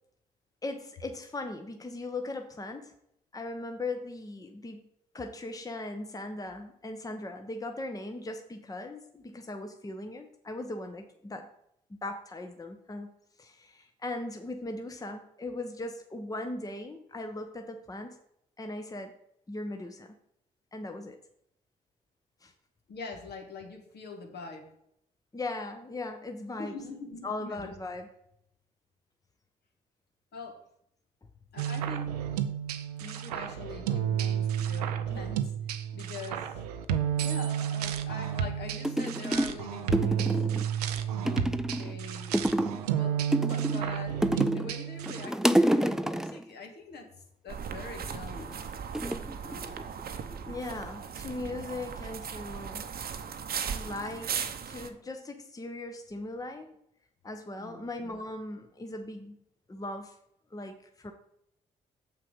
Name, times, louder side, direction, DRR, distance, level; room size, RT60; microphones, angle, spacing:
voice 1, 0.6-2.9 3.3-4.8 5.1-11.5 11.9-13.1 13.4-18.2 18.6-19.1 19.5-20.1 20.7-21.2 22.4-22.5 25.3-26.8 27.2-28.1 50.5-52.8 53.6-56.8 57.2-59.4 59.7-60.2 60.5-61.1, left 2 dB, 20° left, 6 dB, 0.9 m, -39 dB
voice 2, 22.9-24.7 26.6-27.7 30.3-30.6 31.5-32.1 33.0-35.5 35.9-36.5 37.2-40.4 41.1-42.4 42.9-48.6 49.4-49.7 57.6-57.8, left 4 dB, 60° left, 3 dB, 1.6 m, -43 dB
sound 1, 31.6-45.3, right 9 dB, 85° right, 0.5 m, -31 dB
sound 2, 38.4-38.5 38.8-39.6 39.9-40.7 41.2-42.0 42.3-42.9 43.3-44.7 45.0-46.4 48.0-48.4 48.9-50.0 50.3-50.8, right 1 dB, 5° right, 0.5 m, -28 dB
sound 3, 47.5-54.9, right 7 dB, 50° right, 0.8 m, -37 dB
6.8 x 5.6 x 5.2 m, 0.76 s
hypercardioid pair, 40°, 19 cm